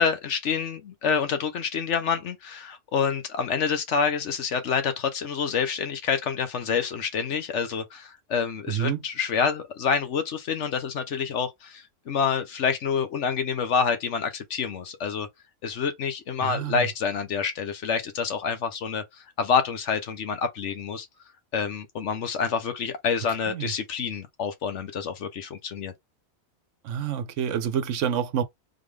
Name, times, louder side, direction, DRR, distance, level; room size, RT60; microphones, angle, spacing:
voice 1, 0.0-15.3 15.6-19.0 19.4-21.1 21.5-25.9, left 6 dB, 60° left, 1.0 m, -27 dB
voice 2, 8.7-9.0 16.4-16.8 23.5-23.7 26.8-28.4, right 8 dB, 70° right, 0.9 m, -28 dB
3.8 x 3.5 x 3.2 m
omnidirectional pair, 1.4 m